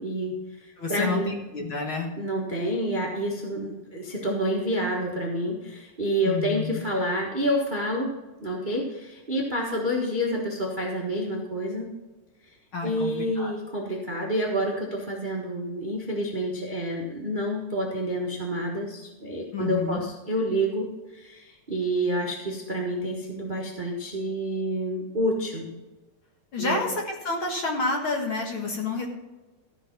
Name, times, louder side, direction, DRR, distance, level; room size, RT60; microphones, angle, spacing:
voice 1, 0.0-1.4 2.2-8.1 8.4-11.9 12.5-12.6 12.8-25.7 26.6-26.8, equal, 70° right, -1 dB, 0.4 m, -28 dB
voice 2, 0.8-2.1 6.2-6.8 12.7-13.5 19.5-20.0 26.5-29.1, left 3 dB, 50° left, 2 dB, 1.8 m, -29 dB
14.0 x 5.8 x 5.9 m, 1.1 s
omnidirectional pair, 3.7 m